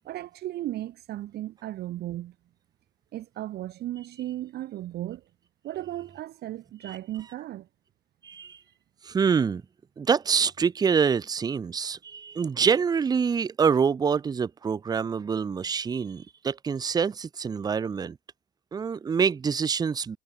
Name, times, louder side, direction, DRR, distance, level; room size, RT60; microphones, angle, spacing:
voice 1, 0.0-2.3 3.1-5.2 5.6-7.7, right 14 dB, 55° right, 0.9 m, -35 dB
voice 2, 8.2-8.6 9.0-9.6 10.0-18.2 18.7-20.2, right 6 dB, 20° right, 0.4 m, -26 dB
hypercardioid pair, 60°, 20 cm